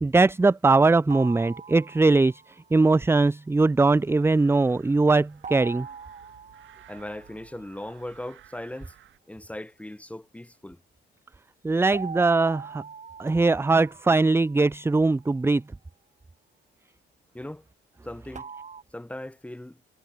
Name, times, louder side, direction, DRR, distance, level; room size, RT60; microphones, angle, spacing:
voice 1, 0.0-5.9 11.6-12.8 13.2-15.6, right 3 dB, 10° right, 0.5 m, -21 dB
sound 1, 1.1-2.6 5.4-7.9 11.9-15.1 18.4-18.8, right 6 dB, 35° right, 1.7 m, -42 dB
sound 2, 3.9-9.2, right 12 dB, 75° right, 3.2 m, -56 dB
voice 2, 6.9-8.9 9.3-10.8 17.3-17.6 18.0-18.5 18.9-19.8, left 1 dB, 5° left, 1.5 m, -38 dB
cardioid pair, 90°, 20 cm